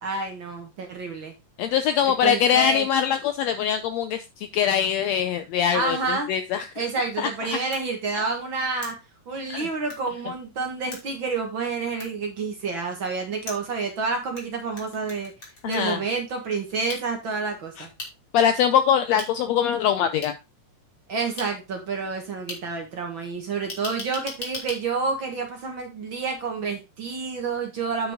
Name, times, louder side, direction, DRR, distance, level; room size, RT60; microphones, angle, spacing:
voice 1, 0.0-1.3 2.0-2.9 5.7-6.3 6.8-9.0 9.3-15.3 15.6-17.9 21.1-28.1, right 4 dB, 50° right, 3 dB, 1.7 m, -29 dB
voice 2, 1.6-6.7 7.2-7.3 8.1-8.2 9.5-9.7 15.6-16.0 17.8-17.9 18.3-20.4, left 8 dB, 85° left, 9 dB, 1.5 m, -23 dB
sound 1, 7.7-7.8 8.8-8.9 9.9-10.0 10.9-11.0 12.0-12.1 13.5-14.4 14.8-15.9 16.9-17.0 18.0-18.1 19.2-19.3 20.2-20.3 21.4-21.5 22.5-22.6 23.7-24.8, left 2 dB, 40° left, 3.6 m, -36 dB
8.9 x 5.9 x 3.6 m, 0.26 s
omnidirectional pair, 3.7 m